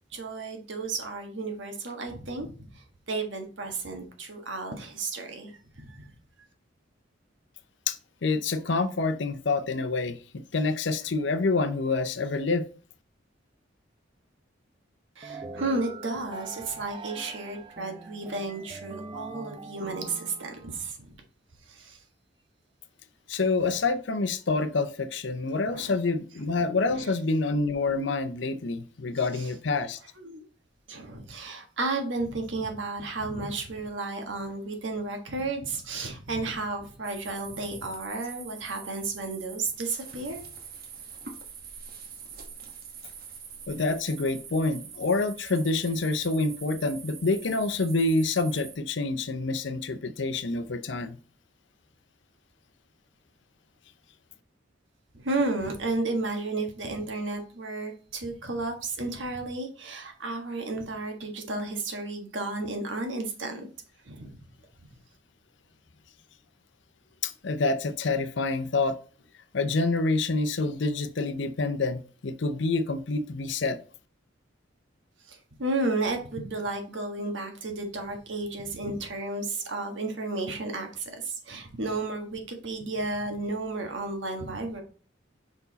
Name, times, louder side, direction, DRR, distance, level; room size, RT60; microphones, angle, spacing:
voice 1, 0.0-6.1 15.2-21.2 21.7-22.0 25.6-26.0 26.9-27.1 29.3-29.5 30.2-30.4 30.9-40.4 55.1-63.7 64.0-64.3 75.3-84.8, right 3 dB, 70° right, 1.4 m, -33 dB
voice 2, 8.2-10.2 10.5-12.7 23.3-30.0 43.7-51.2 67.2-69.0 69.5-73.8, left 3 dB, 70° left, 0.6 m, -27 dB
sound 1, 15.2-20.9, right 3 dB, 25° right, 0.5 m, -42 dB
sound 2, 37.0-48.8, right 6 dB, 55° right, 1.1 m, -44 dB
5.4 x 4.6 x 4.0 m
head